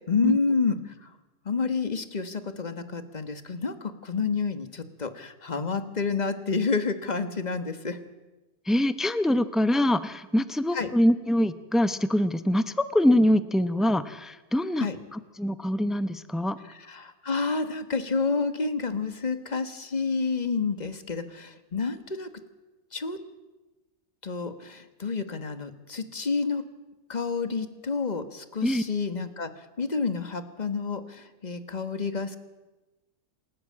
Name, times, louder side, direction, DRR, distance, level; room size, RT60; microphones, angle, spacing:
voice 1, 0.1-0.8 1.4-8.0 10.7-10.9 14.8-15.0 16.7-22.3 22.9-23.2 24.2-26.6 27.1-29.5 29.8-32.4, left 4 dB, 30° left, 11 dB, 1.4 m, -29 dB
voice 2, 8.7-16.6 28.6-28.8, left 1 dB, ahead, 13 dB, 0.3 m, -24 dB
27.5 x 13.0 x 8.7 m, 1.1 s
omnidirectional pair, 1.7 m